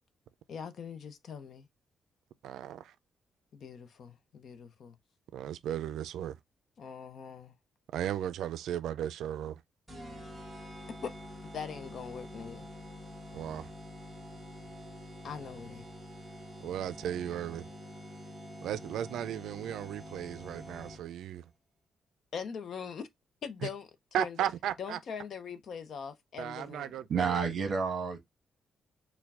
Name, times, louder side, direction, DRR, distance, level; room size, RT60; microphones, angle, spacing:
voice 1, 0.5-1.7 3.5-5.0 6.8-7.6 11.0-11.1 11.5-12.7 15.2-15.9 22.3-23.1 23.4-23.9 24.2-24.4 24.8-27.0, left 6 dB, 50° left, 0.6 m, -41 dB
voice 2, 2.4-2.9 5.3-6.4 7.9-9.6 13.3-13.7 16.6-17.7 18.6-21.5 23.6-23.7 24.1-25.0 26.4-27.4, right 10 dB, 85° right, 0.4 m, -35 dB
sound 1, 9.9-21.3, equal, 5° right, 1.3 m, -47 dB
voice 3, 27.1-28.2, right 5 dB, 50° right, 1.1 m, -29 dB
4.6 x 2.2 x 3.5 m
cardioid pair, 155°, 0 cm